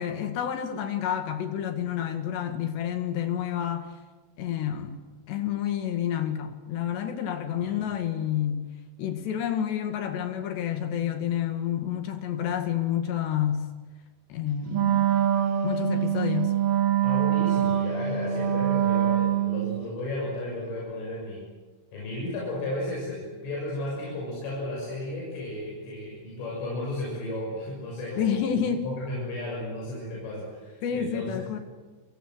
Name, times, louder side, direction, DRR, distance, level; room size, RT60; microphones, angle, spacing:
voice 1, 0.0-3.9 4.4-5.0 5.3-8.7 9.0-13.7 14.3-15.1 15.6-16.6 28.2-28.8 30.8-31.6, left 9 dB, 65° left, 7 dB, 3.9 m, -29 dB
voice 2, 7.6-8.0 17.0-21.4 21.9-28.5 28.8-31.3, left 1 dB, 85° left, -4 dB, 9.6 m, -34 dB
Wind instrument woodwind instrument, 14.7-19.8, right 10 dB, 90° right, 4.8 m, -24 dB
29.0 x 24.5 x 8.0 m, 1.3 s
omnidirectional pair, 5.6 m